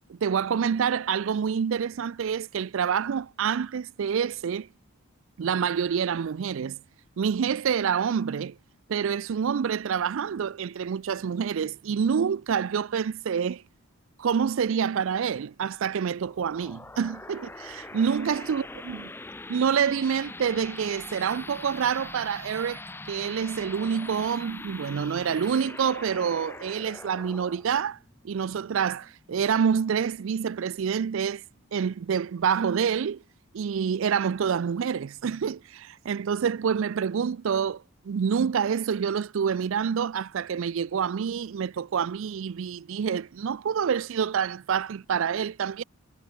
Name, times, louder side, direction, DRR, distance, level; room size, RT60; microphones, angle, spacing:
voice 1, 0.1-4.7 5.4-6.8 7.2-8.6 8.9-13.6 14.2-19.0 19.5-22.8 23.1-28.0 28.2-31.4 31.7-33.2 33.5-45.8, right 7 dB, 65° right, 0.4 m, -27 dB
sound 1, 16.2-29.4, left 2 dB, 10° left, 0.5 m, -43 dB
head